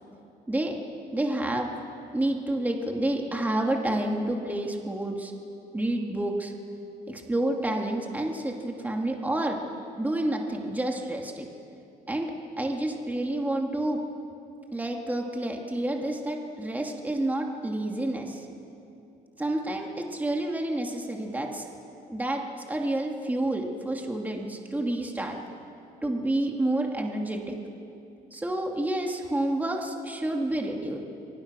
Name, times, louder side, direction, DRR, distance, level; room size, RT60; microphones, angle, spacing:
voice 1, 0.5-0.8 1.1-1.7 2.1-5.3 5.7-6.5 7.1-9.6 10.0-11.4 12.1-14.0 14.7-18.5 19.4-21.7 22.1-22.4 22.7-25.4 26.0-27.5 28.3-31.0, right 1 dB, 10° right, 1 dB, 2.5 m, -29 dB
29.5 x 24.0 x 6.2 m, 2.7 s
cardioid pair, 110°, 17 cm